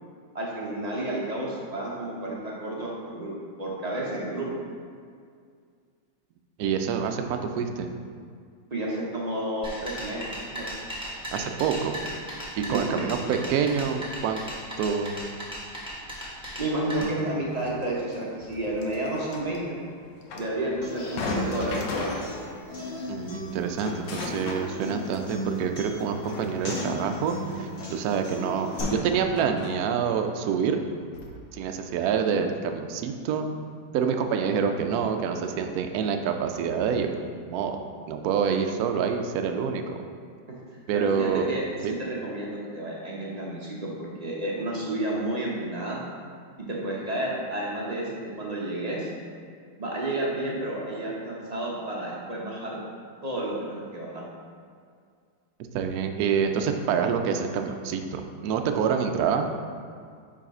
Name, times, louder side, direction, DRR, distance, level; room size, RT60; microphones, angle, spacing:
voice 1, 0.3-3.3 3.6-4.5 8.7-10.7 12.7-13.2 16.6-19.8 20.3-22.4 40.5-40.6 40.9-46.0 46.6-49.1 49.8-52.8 53.2-54.2, right 1 dB, 40° right, -4 dB, 0.6 m, -31 dB
voice 2, 6.6-7.9 11.3-12.1 12.6-14.4 14.8-15.2 17.0-17.1 23.1-30.8 31.5-33.5 33.9-37.1 37.5-37.8 38.1-40.0 40.9-41.5 41.8-41.9 55.7-59.5, right 6 dB, 70° right, 5 dB, 0.9 m, -27 dB
sound 1, 9.6-17.0, equal, 5° right, 1.0 m, -37 dB
sound 2, 17.1-22.6 22.9-23.0 23.4-25.5 26.0-30.2 30.7-30.8 31.1-31.4, left 3 dB, 70° left, 1.4 m, -36 dB
Human voice / Acoustic guitar, 20.8-28.8, equal, 55° left, 1.8 m, -37 dB
5.0 x 4.8 x 5.3 m, 2.2 s
omnidirectional pair, 2.0 m